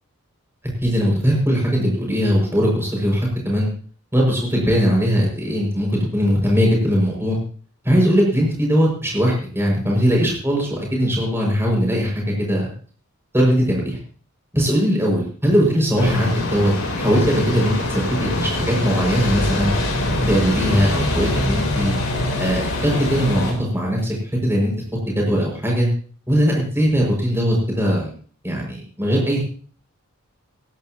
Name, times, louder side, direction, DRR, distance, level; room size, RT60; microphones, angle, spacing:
voice 1, 0.8-3.7 4.1-7.4 7.8-12.7 13.3-14.0 14.5-16.7 17.0-19.7 20.3-22.0 22.4-24.2 24.4-24.7 25.1-25.9 26.3-28.1 28.4-29.4, equal, 10° right, -1 dB, 6.2 m, -20 dB
sound 1, 16.0-23.5, left 1 dB, 70° left, 4.0 m, -24 dB
19.5 x 11.5 x 3.0 m, 0.44 s
head